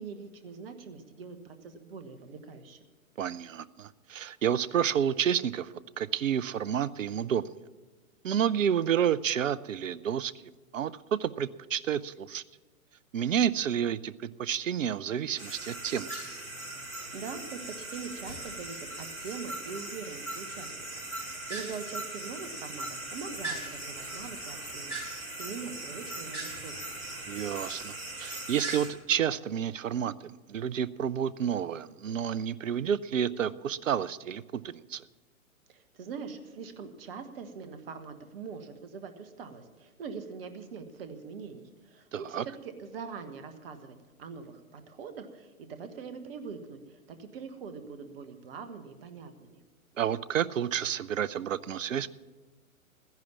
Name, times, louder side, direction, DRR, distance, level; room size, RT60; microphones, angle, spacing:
voice 1, 0.0-2.8 17.1-27.0 35.7-49.6, right 5 dB, 40° right, 8 dB, 1.5 m, -43 dB
voice 2, 3.2-7.5 8.2-12.4 13.1-16.1 27.3-35.0 42.1-42.4 50.0-52.1, right 9 dB, 65° right, 19 dB, 0.6 m, -30 dB
sound 1, 15.4-28.9, right 2 dB, 85° left, 4.0 m, -39 dB
14.0 x 10.5 x 7.2 m, 1.3 s
figure-of-eight pair, 120°, 42 cm